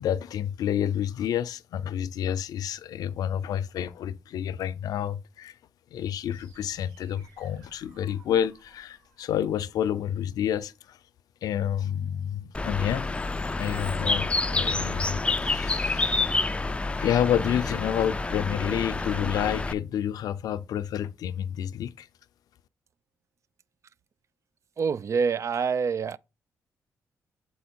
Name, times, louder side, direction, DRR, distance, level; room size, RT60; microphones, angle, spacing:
voice 1, 0.0-5.6 5.9-11.0 11.4-13.1 13.6-16.4 17.0-22.1, left 10 dB, 75° left, 0.5 m, -29 dB
sound 1, 6.2-10.2, right 3 dB, 80° right, 4.3 m, -58 dB
Bird, 12.5-19.7, left 3 dB, 15° left, 0.4 m, -28 dB
voice 2, 24.8-26.2, right 5 dB, 50° right, 0.4 m, -26 dB
6.9 x 4.6 x 4.3 m
cardioid pair, 75°, 6 cm